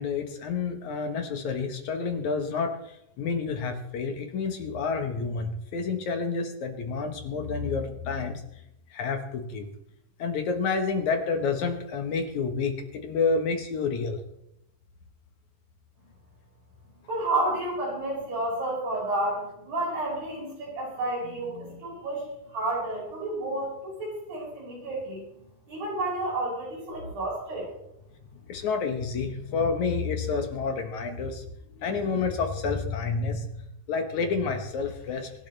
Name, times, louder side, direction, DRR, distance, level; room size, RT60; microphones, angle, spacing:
voice 1, 0.0-8.4 8.9-9.7 10.2-14.2 21.2-21.8 28.5-31.4 31.7-35.3, left 4 dB, 60° left, 5 dB, 2.3 m, -29 dB
voice 2, 17.1-25.2 25.7-27.7, right 2 dB, 70° right, -5 dB, 8.7 m, -31 dB
24.5 x 11.5 x 3.3 m, 0.80 s
omnidirectional pair, 4.2 m